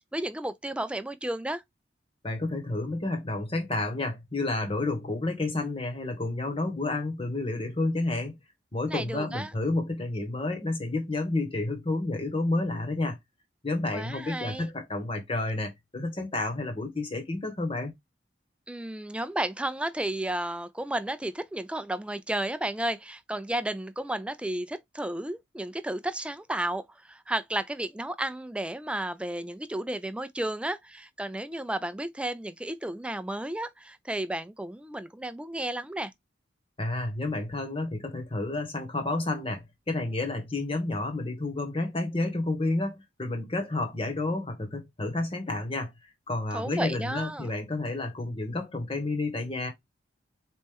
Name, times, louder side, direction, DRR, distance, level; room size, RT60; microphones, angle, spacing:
voice 1, 0.1-1.6 8.9-9.5 13.9-14.7 18.7-36.1 46.5-47.5, right 1 dB, 5° right, 0.3 m, -33 dB
voice 2, 2.2-8.4 8.7-13.2 13.6-17.9 36.8-45.9 46.3-49.7, left 2 dB, 30° left, 1.2 m, -30 dB
4.3 x 3.1 x 3.5 m
head